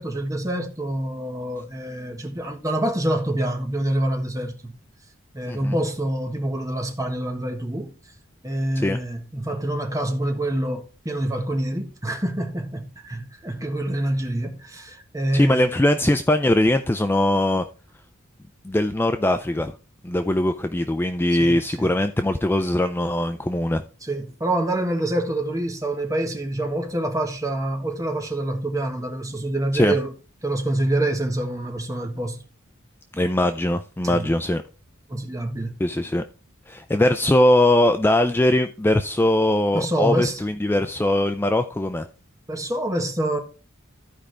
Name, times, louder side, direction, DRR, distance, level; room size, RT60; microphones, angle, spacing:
voice 1, 0.0-4.8 5.3-7.9 8.4-15.8 21.3-22.0 24.0-30.1 30.4-32.4 34.0-34.3 35.1-35.8 39.7-40.4 42.5-43.4, right 1 dB, 15° right, 1.4 m, -26 dB
voice 2, 15.3-17.6 18.6-19.8 20.0-23.8 29.7-29.9 33.1-34.6 35.8-36.2 36.7-42.1, left 1 dB, 10° left, 0.4 m, -21 dB
14.5 x 5.0 x 3.3 m
head